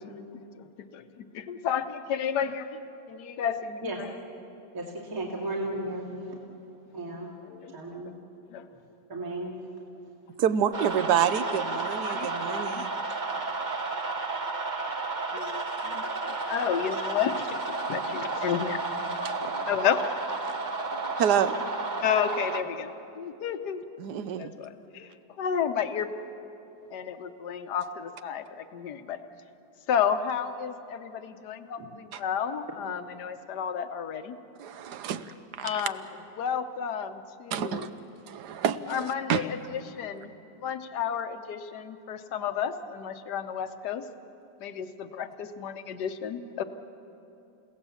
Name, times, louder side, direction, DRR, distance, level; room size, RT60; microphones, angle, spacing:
voice 1, 0.8-2.8 3.1-4.1 7.5-7.7 8.5-8.6 11.8-12.9 15.3-17.6 17.9-18.8 19.6-20.0 22.0-23.8 24.4-26.1 26.9-29.2 29.9-34.4 35.6-36.0 36.4-37.9 38.9-40.3 40.6-44.1 44.6-46.6, left 8 dB, 65° left, 9 dB, 1.5 m, -32 dB
voice 2, 4.7-6.4 6.9-7.3 7.7-8.1 9.1-9.6 31.8-31.9, right 1 dB, 45° right, -2 dB, 2.9 m, -34 dB
voice 3, 10.4-12.9 19.2-19.3 20.4-20.5 21.2-21.6 24.0-24.5 32.1-32.2 34.6-35.9 37.5-37.9 38.2-39.4, right 8 dB, 65° right, 12 dB, 1.3 m, -28 dB
sound 1, 10.7-22.6, right 3 dB, 30° right, 1.0 m, -32 dB
30.0 x 17.0 x 7.2 m, 2.9 s
omnidirectional pair, 2.0 m